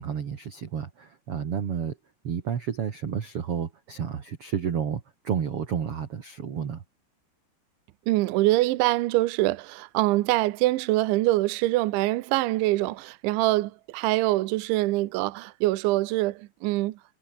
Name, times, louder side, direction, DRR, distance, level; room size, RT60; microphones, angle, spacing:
voice 1, 0.0-1.9 2.2-6.8, right 8 dB, 55° right, 1.6 m, -31 dB
voice 2, 8.1-17.0, right 18 dB, 80° right, 3.2 m, -24 dB
omnidirectional pair, 5.5 m